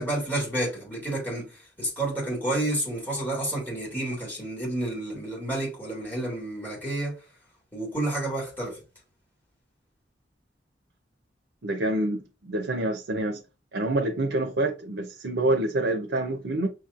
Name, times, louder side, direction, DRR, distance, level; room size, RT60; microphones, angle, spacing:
voice 1, 0.0-7.2 7.7-8.8, right 1 dB, 10° left, 2.2 m, -30 dB
voice 2, 11.6-13.4 13.7-16.7, right 1 dB, 90° right, 0.7 m, -27 dB
6.0 x 3.0 x 2.4 m
head